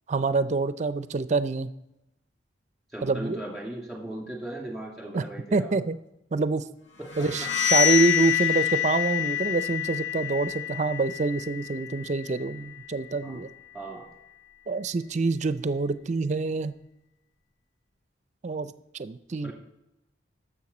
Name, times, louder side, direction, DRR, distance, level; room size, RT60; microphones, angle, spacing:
voice 1, 0.1-1.7 3.0-3.4 5.1-5.2 5.5-6.0 6.3-6.6 7.2-13.5 14.7-16.7 18.4-19.5, right 3 dB, 40° right, 14 dB, 0.4 m, -26 dB
voice 2, 2.9-5.7 7.0-7.3 13.2-13.4 13.7-14.1 19.4-19.5, right 1 dB, ahead, -1 dB, 2.3 m, -37 dB
sound 1, 7.1-12.8, left 11 dB, 70° left, 0.8 m, -27 dB
11.0 x 7.3 x 4.2 m, 0.91 s
head